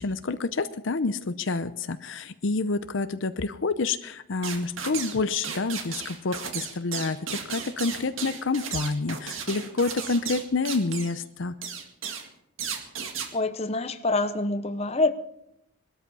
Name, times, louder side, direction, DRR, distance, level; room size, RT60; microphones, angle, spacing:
voice 1, 0.0-11.5, left 3 dB, 60° left, 12 dB, 0.7 m, -28 dB
sound 1, 4.4-5.2 5.4-11.2 11.6-12.3 12.6-13.3, right 6 dB, 65° right, 2.0 m, -34 dB
voice 2, 13.3-15.1, left 2 dB, 30° left, 10 dB, 0.8 m, -26 dB
20.5 x 13.0 x 5.5 m, 0.81 s
head